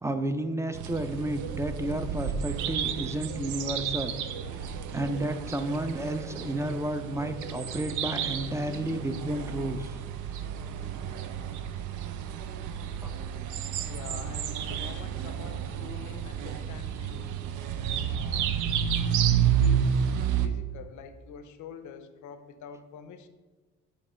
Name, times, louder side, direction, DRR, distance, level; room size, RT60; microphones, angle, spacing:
voice 1, 0.0-4.1 4.6-9.9 13.0-13.1, right 1 dB, 10° right, 9 dB, 0.4 m, -32 dB
sound 1, 0.7-20.5, right 8 dB, 80° right, 0.5 m, -31 dB
voice 2, 13.9-17.4 18.1-18.5 19.6-20.0 20.4-23.3, left 7 dB, 75° left, 10 dB, 0.6 m, -46 dB
7.3 x 3.1 x 4.2 m, 1.3 s
cardioid pair, 90°, 30 cm